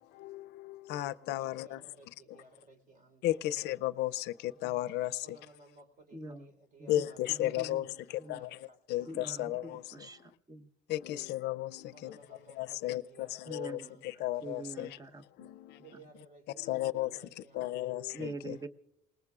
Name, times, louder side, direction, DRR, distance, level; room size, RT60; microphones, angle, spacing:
voice 1, 0.2-1.8 3.2-4.3 4.6-5.1 6.9-7.8 8.3-8.5 8.9-9.8 10.9-12.2 12.6-14.9 15.4-15.5 16.6-17.1 17.6-18.6, left 15 dB, 80° left, 0.5 m, -34 dB
voice 2, 1.4-3.5 5.2-9.1 9.4-9.6 11.9-14.1 15.8-18.2, right 2 dB, 50° right, 3.9 m, -59 dB
voice 3, 6.1-6.5 6.8-6.9 7.4-7.8 8.2-8.4 9.1-10.7 13.5-13.9 14.4-15.5 18.1-18.7, right 2 dB, 20° right, 1.0 m, -44 dB
27.5 x 20.0 x 2.4 m
cardioid pair, 110°, 17 cm